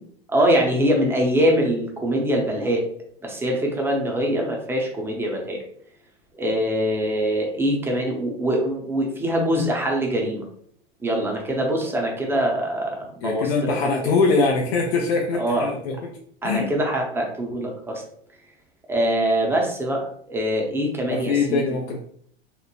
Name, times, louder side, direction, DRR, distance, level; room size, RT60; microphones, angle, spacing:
voice 1, 0.3-2.9 3.2-5.6 6.3-10.4 11.0-13.8 14.0-14.2 15.3-15.7 16.4-18.0 18.9-21.8, equal, 5° right, 0 dB, 0.6 m, -23 dB
voice 2, 13.2-15.9 16.4-16.7 21.1-22.0, left 4 dB, 70° left, 1 dB, 0.6 m, -22 dB
3.1 x 2.0 x 2.3 m, 0.62 s
hypercardioid pair, 95°, 32 cm